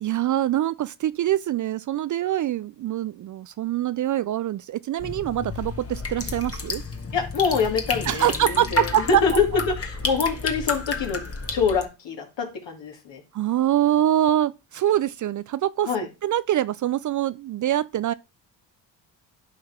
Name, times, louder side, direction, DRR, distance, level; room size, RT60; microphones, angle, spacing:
voice 1, 0.0-6.8 8.1-9.2 13.3-15.9 16.2-18.1, right 12 dB, 40° right, 0.4 m, -24 dB
sound 1, 5.0-11.8, left 4 dB, 30° left, 1.5 m, -31 dB
voice 2, 7.1-11.2 11.5-13.2 15.8-16.1, left 5 dB, 60° left, 2.7 m, -25 dB
11.5 x 4.5 x 3.6 m
hypercardioid pair, 50°, 48 cm